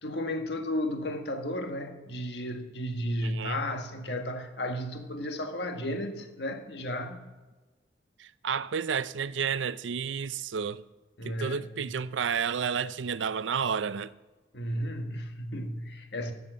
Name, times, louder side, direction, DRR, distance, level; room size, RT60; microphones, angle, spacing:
voice 1, 0.0-7.3 11.2-11.7 14.5-16.3, left 1 dB, 65° left, 1.6 m, -33 dB
voice 2, 3.2-3.6 8.2-10.8 11.2-14.1, right 6 dB, 80° right, 0.5 m, -31 dB
12.5 x 7.1 x 8.1 m
head